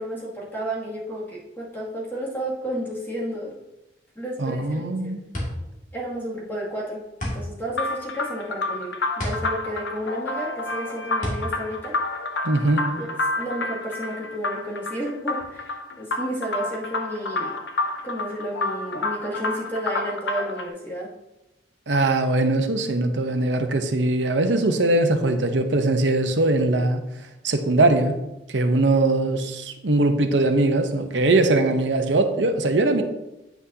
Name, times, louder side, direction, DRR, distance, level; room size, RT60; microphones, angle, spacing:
voice 1, 0.0-3.6 4.2-5.1 5.9-7.0 7.3-11.9 13.0-17.6 18.0-21.1, right 1 dB, 10° left, -6 dB, 2.4 m, -32 dB
voice 2, 4.4-5.2 12.4-12.8 21.9-27.0 27.4-28.1 28.5-33.0, right 2 dB, 80° right, 6 dB, 0.8 m, -21 dB
sound 1, 4.8-12.9, left 1 dB, 45° left, 2.1 m, -33 dB
sound 2, 7.7-20.7, left 2 dB, 75° left, 0.7 m, -29 dB
9.2 x 6.0 x 2.8 m, 0.94 s
head